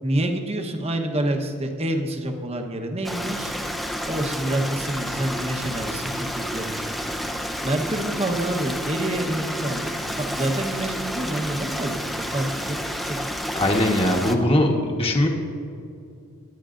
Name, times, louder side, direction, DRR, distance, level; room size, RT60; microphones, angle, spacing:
voice 1, 0.0-3.5 4.1-7.0 7.6-12.8 13.0-13.2, right 1 dB, 30° right, 3 dB, 1.0 m, -27 dB
Stream, 3.0-14.4, equal, ahead, 0.6 m, -30 dB
voice 2, 13.5-15.3, left 1 dB, 25° left, 1 dB, 1.3 m, -20 dB
23.5 x 10.5 x 2.6 m, 2.5 s
head